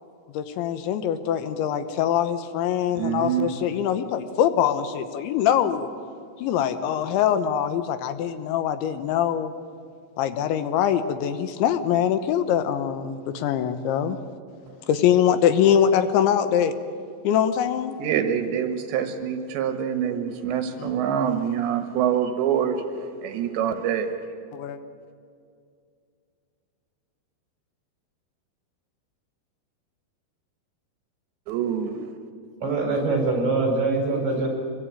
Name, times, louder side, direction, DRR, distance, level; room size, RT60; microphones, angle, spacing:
voice 1, 0.4-5.9 6.4-9.5 10.2-14.2 14.9-16.8 17.3-17.9 20.8-20.9 24.5-24.8, left 9 dB, 80° left, 10 dB, 3.3 m, -23 dB
voice 2, 3.0-3.6 14.7-14.8 18.0-24.3 31.5-32.1, right 8 dB, 75° right, 7 dB, 3.5 m, -26 dB
voice 3, 32.6-34.5, right 3 dB, 30° right, 1 dB, 5.7 m, -23 dB
26.0 x 22.5 x 8.9 m, 2.3 s
omnidirectional pair, 5.4 m